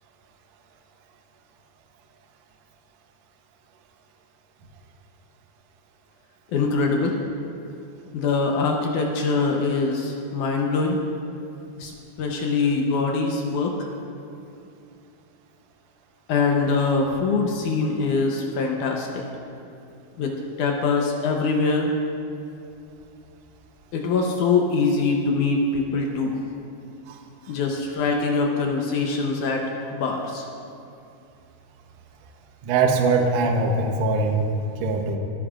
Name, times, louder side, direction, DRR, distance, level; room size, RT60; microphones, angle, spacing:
voice 1, 6.5-7.2 8.1-11.0 11.8-11.9 12.2-13.7 16.3-19.2 20.2-20.3 20.6-21.9 23.9-26.4 27.5-29.6 29.9-30.5, left 4 dB, 70° left, 0 dB, 1.9 m, -23 dB
voice 2, 32.6-34.4 34.8-35.2, right 3 dB, 85° right, 2 dB, 1.5 m, -21 dB
29.0 x 10.0 x 2.5 m, 2.6 s
omnidirectional pair, 4.5 m